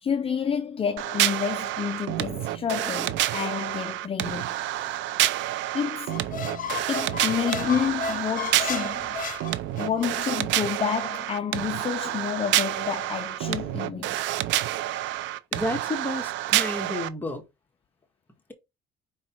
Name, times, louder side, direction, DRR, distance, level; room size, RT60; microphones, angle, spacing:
voice 1, 0.0-4.6 5.7-6.3 6.9-9.2 9.8-14.3, left 7 dB, 30° left, 0.5 m, -29 dB
sound 1, 1.0-17.1, right 14 dB, 80° right, 0.6 m, -28 dB
Squeak, 6.0-10.1, left 6 dB, 45° left, 1.0 m, -34 dB
voice 2, 15.5-17.4, left 1 dB, 10° left, 1.8 m, -31 dB
5.1 x 4.0 x 4.6 m
cardioid pair, 120°, 19 cm